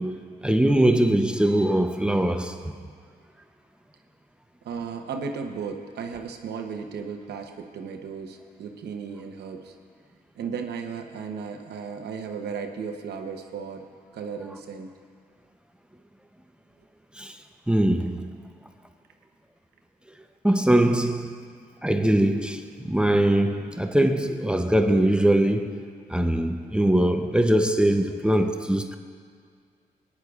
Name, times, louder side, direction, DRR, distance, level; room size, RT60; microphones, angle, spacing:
voice 1, 0.0-2.6 17.2-17.3 17.7-18.3 20.4-21.3 21.8-25.8 26.1-29.0, right 1 dB, 5° right, 0.7 m, -22 dB
voice 2, 4.6-9.7 10.4-13.9 14.1-14.9, right 6 dB, 90° right, 0.8 m, -35 dB
19.5 x 9.9 x 2.4 m
cardioid pair, 65°, 16 cm